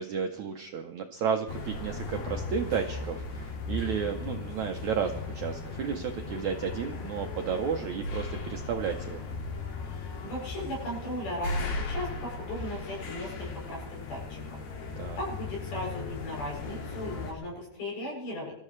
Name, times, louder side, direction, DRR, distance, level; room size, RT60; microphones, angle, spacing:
voice 1, 0.0-9.3 15.0-15.2, right 7 dB, 70° right, 4 dB, 1.8 m, -32 dB
sound 1, 1.5-17.3, left 3 dB, 90° left, 4.4 m, -37 dB
voice 2, 10.2-14.4 15.2-18.5, left 1 dB, 70° left, -2 dB, 9.9 m, -37 dB
27.5 x 14.0 x 3.3 m, 0.85 s
omnidirectional pair, 4.5 m